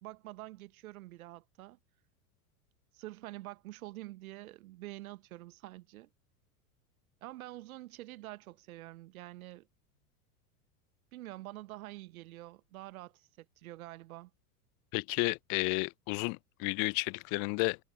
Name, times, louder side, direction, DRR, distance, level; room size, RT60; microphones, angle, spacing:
voice 1, 0.0-1.8 2.9-6.1 7.2-9.7 11.1-14.3, right 17 dB, 65° right, 1.3 m, -47 dB
voice 2, 14.9-17.8, left 35 dB, 40° left, 0.6 m, -32 dB
figure-of-eight pair, 85°, 46 cm